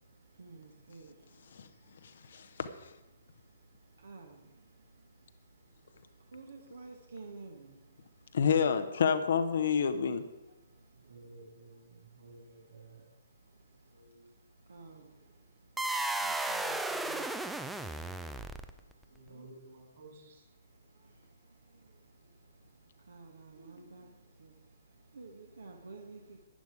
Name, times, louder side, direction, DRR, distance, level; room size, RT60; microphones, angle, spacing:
voice 1, 0.0-2.6 3.1-8.4 10.5-11.1 13.3-14.0 14.5-19.4 20.6-26.4, right 3 dB, 65° right, 2 dB, 1.4 m, -54 dB
voice 2, 2.3-2.7 8.3-10.2, left 6 dB, 50° left, 10 dB, 0.8 m, -28 dB
voice 3, 10.9-13.0 13.9-14.3 19.1-20.5, right 2 dB, 45° right, 1 dB, 4.1 m, -54 dB
sound 1, 15.8-18.9, right 2 dB, 5° right, 0.5 m, -34 dB
11.0 x 10.5 x 4.9 m, 1.1 s
figure-of-eight pair, 125°, 0 cm